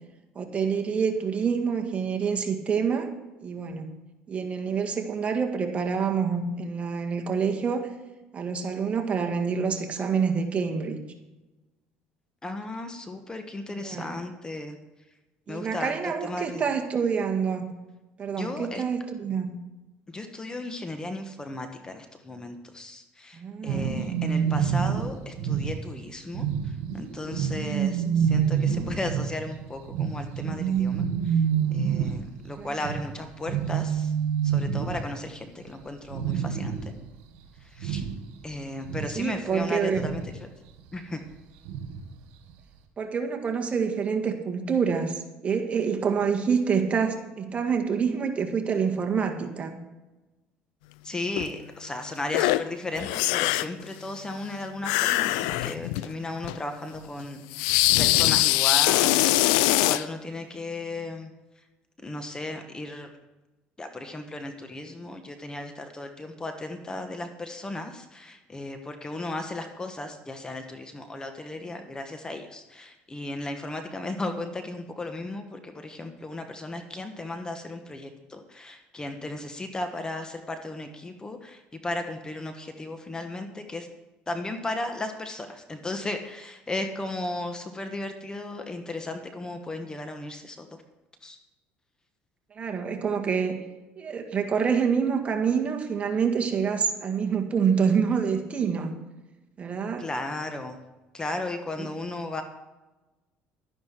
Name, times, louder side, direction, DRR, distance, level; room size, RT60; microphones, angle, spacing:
voice 1, 0.4-3.1 3.4-3.9 4.3-7.9 8.3-11.0 13.8-14.2 15.5-17.7 18.2-19.5 23.3-24.1 28.3-28.9 32.6-33.0 39.2-40.1 43.0-49.8 92.6-93.6 94.0-99.0 99.6-100.0 101.8-101.9, right 6 dB, 35° right, 3 dB, 1.8 m, -27 dB
voice 2, 12.4-14.8 15.5-16.7 18.4-18.8 20.1-31.4 31.7-34.1 34.4-36.9 37.6-38.0 38.4-40.5 40.9-41.2 51.0-57.4 57.7-61.3 62.0-63.1 63.8-83.9 84.3-90.7 91.2-91.4 100.0-100.8 101.1-102.4, left 2 dB, 20° left, 6 dB, 1.3 m, -35 dB
sound 1, 23.7-35.4 35.7-35.8 36.1-37.1 37.4-38.4 38.8-40.4 41.6-42.1 42.5-42.6, right 8 dB, 80° right, 1.8 m, -27 dB
sound 2, 51.4-51.5 52.3-52.6 52.9-53.8 54.8-56.1 56.4-56.6 57.5-60.0, left 17 dB, 90° left, 0.4 m, -22 dB
12.0 x 11.0 x 4.6 m, 1.1 s
supercardioid pair, 100°, 4 cm